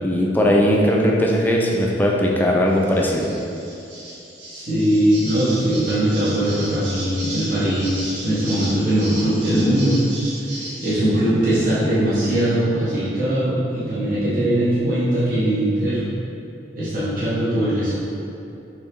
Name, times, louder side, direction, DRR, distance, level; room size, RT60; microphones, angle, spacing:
voice 1, 0.0-3.3, equal, 10° left, -2 dB, 0.4 m, -18 dB
sound 1, 2.7-10.9, right 1 dB, 75° right, 0.9 m, -35 dB
voice 2, 4.5-10.0 10.4-16.0 16.7-18.0, right 1 dB, 50° right, -12 dB, 0.9 m, -20 dB
4.5 x 3.2 x 3.0 m, 2.7 s
head